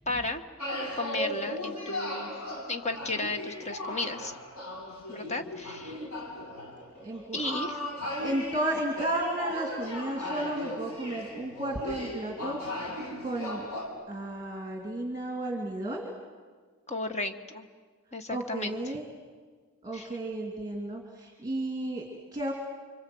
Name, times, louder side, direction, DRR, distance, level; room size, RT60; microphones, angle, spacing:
voice 1, 0.1-2.3 2.7-4.3 5.1-6.1 7.3-7.8 16.9-17.7 18.1-18.8 19.9-20.1, left 2 dB, 30° left, 6 dB, 1.5 m, -34 dB
sound 1, 0.6-13.9, left 1 dB, 80° left, 6.7 m, -36 dB
voice 2, 7.0-7.6 8.2-12.6 13.2-13.7 14.1-16.1 18.3-19.1 19.8-22.5, right 1 dB, 20° right, 0 dB, 2.6 m, -33 dB
29.0 x 25.0 x 7.8 m, 1.5 s
head